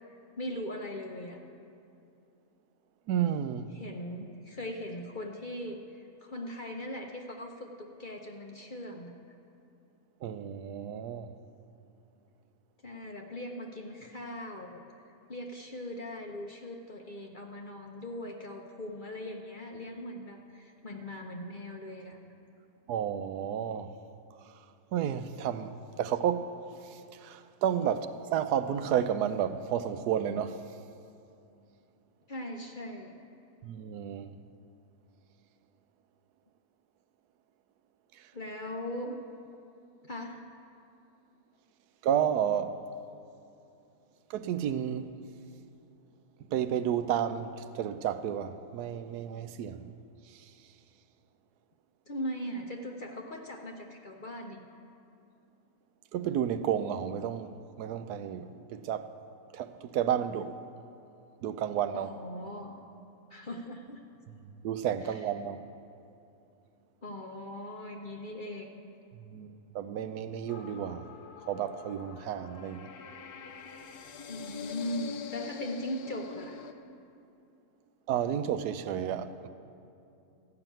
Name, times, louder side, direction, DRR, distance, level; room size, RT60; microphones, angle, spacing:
voice 1, 0.1-1.4 3.7-9.1 12.8-14.8 15.3-22.2 32.3-33.1 38.3-39.2 40.0-40.4 52.1-54.6 61.9-62.8 63.3-64.0 65.0-65.2 67.0-68.9 74.3-76.6, left 1 dB, 45° left, 0.7 m, -40 dB
voice 2, 3.1-3.7 10.2-11.3 22.9-23.9 24.9-26.5 26.9-30.6 33.6-34.3 42.0-42.8 44.3-45.1 46.5-49.9 56.1-57.5 57.8-59.1 59.5-60.6 61.4-62.1 64.3-64.4 64.6-65.6 69.2-69.5 69.7-71.1 71.5-72.9 78.1-79.5, right 9 dB, 85° right, 1.1 m, -31 dB
sound 1, 70.5-76.7, left 5 dB, 80° left, 1.2 m, -43 dB
13.5 x 5.9 x 9.1 m
omnidirectional pair, 1.6 m